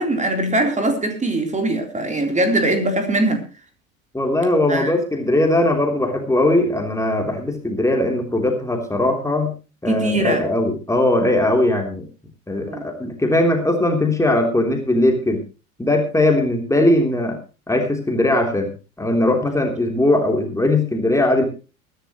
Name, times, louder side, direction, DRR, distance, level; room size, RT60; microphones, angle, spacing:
voice 1, 0.0-3.4 4.7-4.9 9.9-10.4 12.7-12.9, right 1 dB, 15° right, 3.7 m, -21 dB
voice 2, 4.1-9.5 9.8-12.1 12.5-15.4 15.8-17.4 17.7-18.7 19.0-21.4, left 1 dB, 5° left, 3.3 m, -19 dB
22.5 x 11.5 x 3.1 m
figure-of-eight pair, 75°, 41 cm